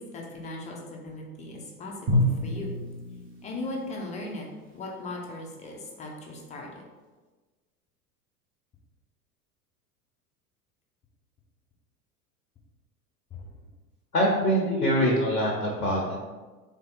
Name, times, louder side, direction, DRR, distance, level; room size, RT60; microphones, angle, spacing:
voice 1, 0.0-2.7 3.4-4.5 4.7-6.8 13.3-13.4, left 2 dB, 15° left, -1 dB, 0.5 m, -38 dB
Drum, 2.1-5.0, left 1 dB, 25° right, 0.9 m, -30 dB
voice 2, 14.1-16.2, equal, 85° left, -2 dB, 0.7 m, -24 dB
3.3 x 2.7 x 4.1 m, 1.3 s
figure-of-eight pair, 80°, 46 cm